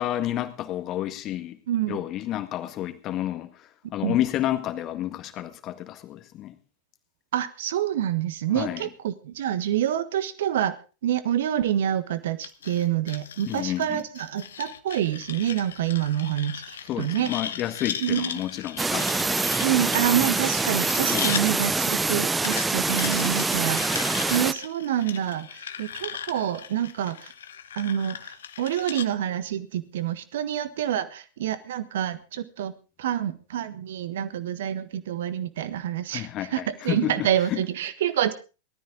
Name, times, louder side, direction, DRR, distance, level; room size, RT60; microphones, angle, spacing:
voice 1, 0.0-1.6 1.9-6.6 8.5-8.9 13.5-14.0 16.9-19.9 21.1-21.3 36.1-37.6, left 13 dB, 35° left, 8 dB, 1.8 m, -30 dB
voice 2, 1.7-2.0 4.0-4.2 7.3-10.8 11.0-17.3 18.0-18.3 19.6-27.3 27.8-32.7 33.0-38.3, right 11 dB, 60° right, 13 dB, 1.4 m, -27 dB
sound 1, 12.4-21.5 22.4-29.1, left 8 dB, 65° left, 1.1 m, -37 dB
sound 2, 18.8-24.5, right 3 dB, 10° right, 0.7 m, -25 dB
19.0 x 13.5 x 3.7 m, 0.32 s
figure-of-eight pair, 90°, 0 cm